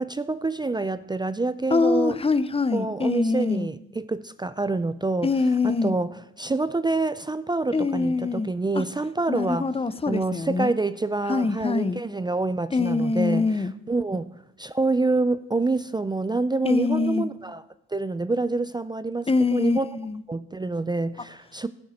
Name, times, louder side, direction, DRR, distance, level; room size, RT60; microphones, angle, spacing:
voice 1, 0.0-2.2 2.7-5.3 5.6-6.1 6.4-9.7 10.1-17.6 17.9-19.9 20.3-21.7, right 3 dB, 15° right, 0.4 m, -27 dB
voice 2, 1.7-3.7 5.2-6.0 7.7-8.5 8.7-8.8 9.3-10.7 11.3-12.0 12.7-13.7 16.6-17.3 19.3-20.2, left 4 dB, 20° left, 0.7 m, -24 dB
15.5 x 10.0 x 4.3 m
cardioid pair, 90°, 30 cm